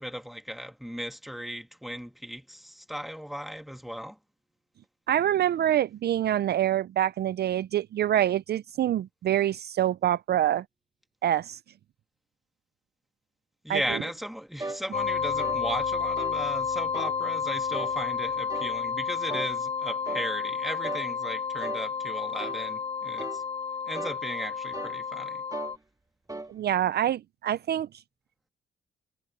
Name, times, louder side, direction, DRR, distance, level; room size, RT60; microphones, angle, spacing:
voice 1, 0.0-4.2 13.6-23.4 23.9-25.4, equal, ahead, 2.1 m, -36 dB
voice 2, 5.1-10.6 11.2-11.6 13.7-14.0 26.5-27.9, right 11 dB, 55° right, 0.5 m, -26 dB
sound 1, 14.6-14.8 15.4-15.6 16.2-16.4 16.9-17.2 17.7-17.9 18.5-18.7 19.3-19.5 20.1-20.3 20.8-21.1 21.6-21.8 22.4-22.6 23.2-23.4 23.9-24.2 24.7-25.0 25.5-25.8 26.3-26.5, right 2 dB, 15° right, 2.1 m, -37 dB
sound 2, 14.9-25.8, left 6 dB, 30° left, 0.8 m, -31 dB
cardioid pair, 90°, 20 cm